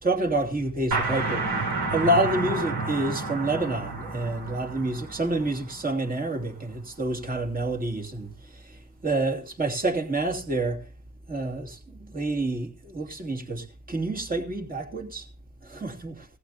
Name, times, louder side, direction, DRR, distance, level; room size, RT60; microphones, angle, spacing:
voice 1, 0.0-1.4 1.9-8.3 9.0-10.8 11.3-11.8 12.1-15.3 15.6-16.3, right 2 dB, 30° right, 2.8 m, -28 dB
sound 1, 0.9-6.3, right 3 dB, 80° right, 6.2 m, -30 dB
17.0 x 15.0 x 2.7 m
cardioid pair, 90°, 30 cm